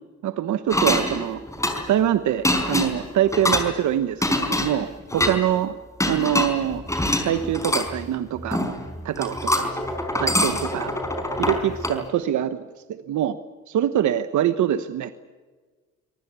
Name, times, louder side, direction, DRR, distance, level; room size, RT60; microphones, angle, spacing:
voice 1, 0.2-1.4 1.9-5.7 6.1-6.8 7.2-8.6 9.0-9.7 10.2-10.9 11.4-13.4 13.7-15.1, right 11 dB, 75° right, 10 dB, 1.2 m, -24 dB
sound 1, 0.7-2.0 2.4-3.7 4.2-5.4 6.0-7.9 8.5-8.9 9.1-12.0, left 1 dB, 10° left, 4.6 m, -24 dB
sound 2, 6.7-12.0, right 1 dB, 20° right, 5.7 m, -40 dB
25.5 x 19.5 x 8.4 m, 1.4 s
cardioid pair, 90°, 30 cm